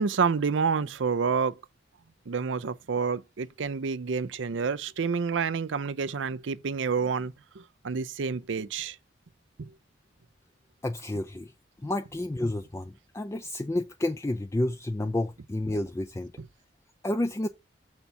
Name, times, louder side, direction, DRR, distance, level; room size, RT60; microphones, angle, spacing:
voice 1, 0.0-1.6 2.3-9.0 9.6-9.7 16.4-16.5, right 5 dB, 80° right, 0.5 m, -29 dB
voice 2, 10.8-11.5 11.8-16.3 17.0-17.5, left 1 dB, 15° left, 0.4 m, -30 dB
6.7 x 4.4 x 5.6 m
head